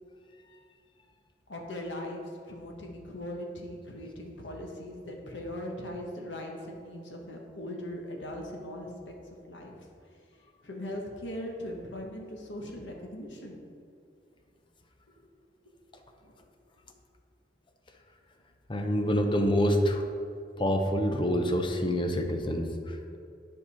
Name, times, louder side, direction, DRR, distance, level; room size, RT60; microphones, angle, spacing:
voice 1, 1.5-9.1 9.5-9.7 10.6-13.6 16.2-16.4, left 1 dB, 90° left, 0 dB, 1.3 m, -39 dB
voice 2, 18.7-20.0 20.6-23.2, equal, 25° left, 4 dB, 0.7 m, -27 dB
10.0 x 5.3 x 4.3 m, 2.4 s
head